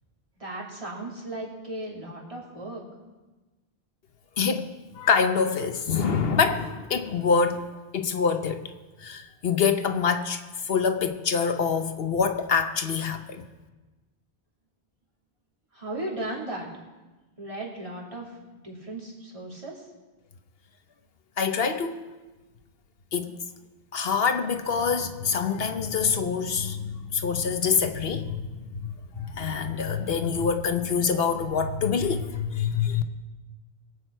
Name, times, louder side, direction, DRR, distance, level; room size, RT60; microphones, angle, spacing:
voice 1, 0.4-2.8 15.7-16.7 17.4-18.4 18.6-19.8, right 1 dB, 30° right, -4 dB, 2.9 m, -36 dB
voice 2, 4.4-4.7 4.9-7.7 7.9-8.6 9.0-13.5 21.4-22.0 23.1-23.4 23.9-33.0, left 6 dB, 65° left, 8 dB, 1.1 m, -25 dB
22.5 x 8.4 x 4.5 m, 1.2 s
omnidirectional pair, 1.1 m